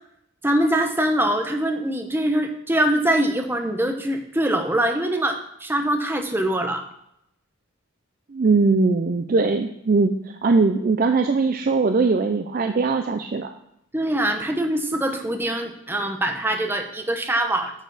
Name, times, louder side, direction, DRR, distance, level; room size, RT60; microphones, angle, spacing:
voice 1, 0.4-6.8 13.9-17.7, right 1 dB, 10° right, 4 dB, 0.8 m, -23 dB
voice 2, 8.3-13.5, right 4 dB, 40° right, 6 dB, 0.4 m, -20 dB
9.2 x 6.9 x 4.0 m, 0.78 s
head